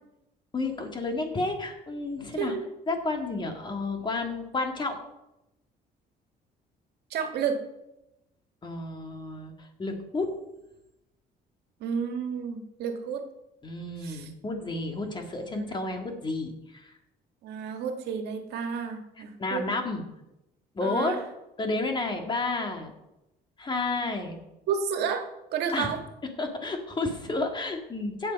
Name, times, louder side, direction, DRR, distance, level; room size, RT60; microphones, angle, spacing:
voice 1, 0.5-2.5 2.9-5.0 8.6-10.3 13.6-16.9 19.4-20.0 20.7-21.2 21.6-22.9 23.6-24.4 25.7-25.9 26.4-28.3, left 3 dB, 25° left, 4 dB, 2.2 m, -31 dB
voice 2, 2.4-2.7 7.1-7.6 11.8-13.2 14.0-14.3 15.5-15.9 17.4-19.6 20.8-21.2 24.7-25.2 25.5-26.0, right 7 dB, 80° right, 5 dB, 1.7 m, -31 dB
16.5 x 7.0 x 5.4 m, 0.93 s
cardioid pair, 110°, 17 cm